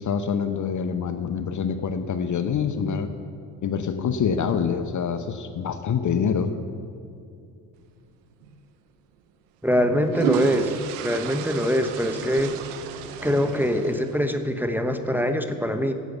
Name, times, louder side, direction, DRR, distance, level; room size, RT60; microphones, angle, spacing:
voice 1, 0.0-3.1 3.6-6.6, left 6 dB, 40° left, 9 dB, 0.9 m, -26 dB
sound 1, 8.4-8.6 9.8-14.4, right 8 dB, 80° right, 0.9 m, -32 dB
voice 2, 9.6-10.8 11.0-12.5 13.2-15.9, equal, 5° right, 5 dB, 1.0 m, -23 dB
11.0 x 8.3 x 7.9 m, 2.5 s
hypercardioid pair, 60°, 45 cm